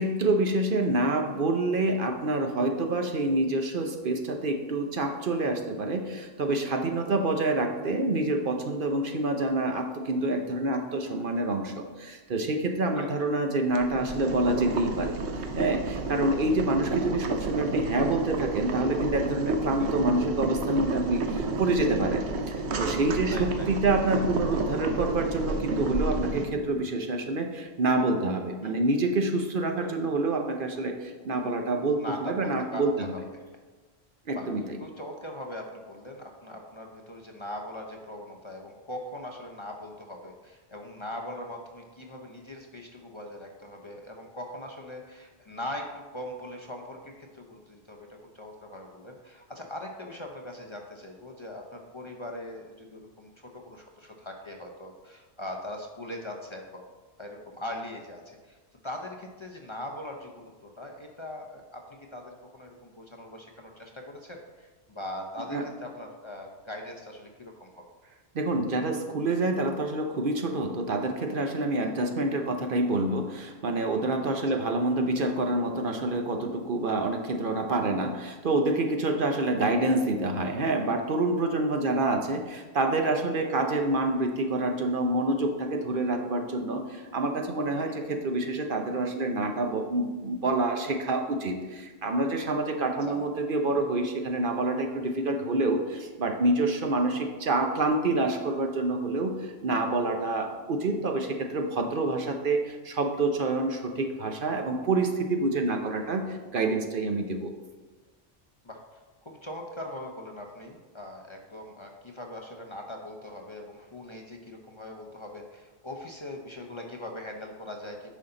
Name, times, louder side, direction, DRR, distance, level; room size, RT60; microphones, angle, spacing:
voice 1, 0.0-15.2 15.5-22.2 22.5-33.1 34.3-34.6 65.5-65.6 68.3-107.5, right 2 dB, 55° right, 4 dB, 0.9 m, -27 dB
Boiling, 13.7-26.5, right 3 dB, 85° right, 1.1 m, -31 dB
voice 2, 23.3-23.7 28.6-28.7 29.8-29.9 32.0-33.4 34.3-34.5 34.8-56.8 57.2-58.6 58.8-67.8 71.8-71.9 74.5-74.6 81.8-81.9 87.9-88.0 93.1-93.2 96.9-97.0 105.7-105.8 108.6-118.1, left 1 dB, 30° left, 1 dB, 0.7 m, -41 dB
9.8 x 5.6 x 3.9 m, 1.3 s
omnidirectional pair, 1.1 m